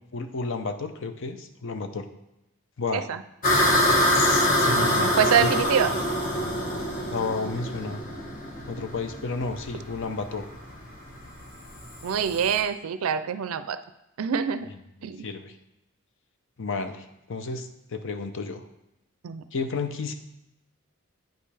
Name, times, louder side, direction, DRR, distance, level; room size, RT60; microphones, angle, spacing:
voice 1, 0.1-2.1 2.8-3.1 4.1-5.5 7.1-8.0 8.7-10.5 14.7-15.5 16.6-18.6 19.5-20.1, left 4 dB, 65° left, 8 dB, 0.6 m, -32 dB
sound 1, 3.4-12.6, equal, 40° left, 1.1 m, -25 dB
voice 2, 5.0-5.9 12.0-13.8 14.2-14.7 15.0-15.3 19.2-19.4, right 7 dB, 80° right, 12 dB, 0.4 m, -25 dB
9.0 x 5.4 x 3.4 m, 0.92 s
head